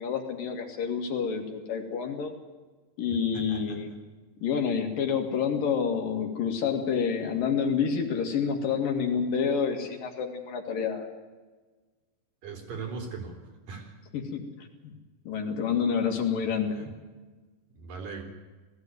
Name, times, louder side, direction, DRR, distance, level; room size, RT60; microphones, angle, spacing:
voice 1, 0.0-2.3 3.0-3.9 4.4-11.1 14.1-14.4 14.8-14.9 15.3-16.8, left 6 dB, 80° left, 4 dB, 3.9 m, -28 dB
voice 2, 3.3-3.8 12.4-13.3 13.7-13.9 16.7-16.9 17.7-18.2, right 4 dB, 75° right, 3 dB, 4.9 m, -39 dB
19.0 x 15.5 x 9.4 m, 1.3 s
omnidirectional pair, 3.9 m